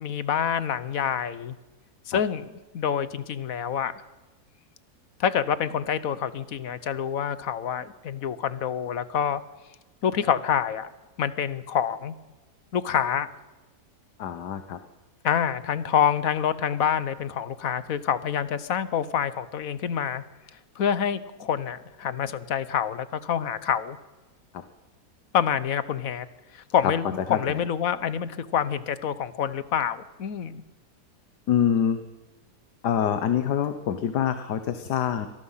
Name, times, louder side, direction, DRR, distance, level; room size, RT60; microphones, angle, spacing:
voice 1, 0.0-1.6 2.1-4.0 5.2-9.4 10.0-10.9 11.2-12.1 12.7-13.3 15.2-20.2 20.8-24.0 25.3-26.3 26.5-30.6, left 8 dB, 60° left, 15 dB, 1.3 m, -27 dB
voice 2, 14.2-14.8 24.5-24.6 27.3-27.6 31.5-32.0 32.8-35.3, left 9 dB, 90° left, 9 dB, 1.6 m, -25 dB
24.5 x 18.5 x 5.7 m, 1.1 s
omnidirectional pair, 1.7 m